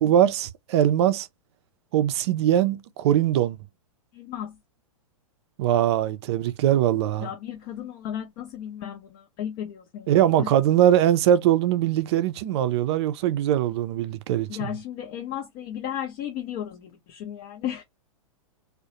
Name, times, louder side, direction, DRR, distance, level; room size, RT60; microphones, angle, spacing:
voice 1, 0.0-1.3 1.9-3.6 5.6-7.3 10.1-14.5, right 11 dB, 50° right, 0.4 m, -21 dB
voice 2, 4.1-4.6 7.2-10.5 14.5-17.8, left 10 dB, 40° left, 0.5 m, -34 dB
2.3 x 2.1 x 2.8 m
hypercardioid pair, 115°, 18 cm